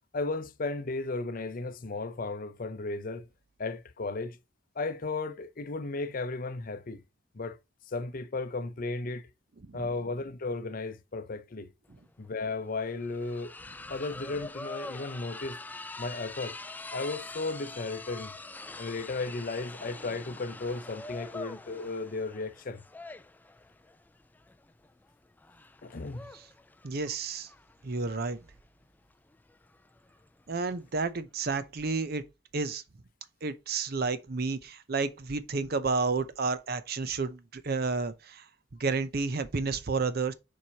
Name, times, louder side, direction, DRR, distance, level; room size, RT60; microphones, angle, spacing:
voice 1, 0.1-3.2 3.6-4.4 4.8-7.0 7.3-7.6 7.9-9.3 9.7-11.7 12.2-13.5 13.9-15.6 16.0-16.6 16.9-18.3 18.8-22.8 25.8-26.3, left 3 dB, 45° left, 0.6 m, -35 dB
sound 1, 11.9-12.0 12.2-31.1, left 2 dB, 10° left, 0.3 m, -45 dB
voice 2, 26.8-27.5 27.8-28.4 30.5-32.2 32.5-32.8 33.4-38.5 38.8-40.3, right 4 dB, 55° right, 0.6 m, -31 dB
7.3 x 4.7 x 2.9 m
head